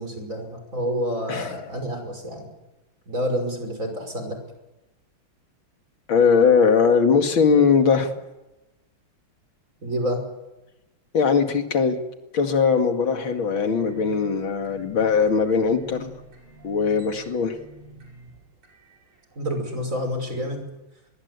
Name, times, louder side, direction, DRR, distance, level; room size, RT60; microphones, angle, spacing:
voice 1, 0.0-2.5 3.1-4.4 9.8-10.2 19.4-20.6, equal, 35° right, 5 dB, 6.0 m, -28 dB
voice 2, 6.1-8.1 11.1-12.0 12.3-16.1 16.6-17.6, left 5 dB, 65° left, 6 dB, 3.0 m, -20 dB
sound 1, 13.4-19.9, right 2 dB, 70° right, 6.1 m, -48 dB
24.5 x 22.0 x 8.3 m, 1.0 s
omnidirectional pair, 2.4 m